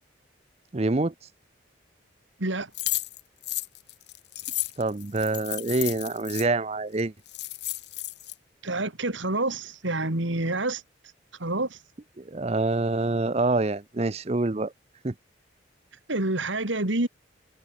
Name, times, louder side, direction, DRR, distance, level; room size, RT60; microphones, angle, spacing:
voice 1, 0.7-1.1 4.8-7.1 12.2-14.7 15.0-15.1, right 2 dB, 35° right, 0.6 m, -26 dB
voice 2, 2.4-2.7 8.6-10.8 11.4-11.8 16.1-17.1, right 2 dB, 75° right, 2.6 m, -27 dB
sound 1, 2.7-6.5 7.0-7.1 7.3-8.3, left 16 dB, 60° left, 2.8 m, -33 dB
head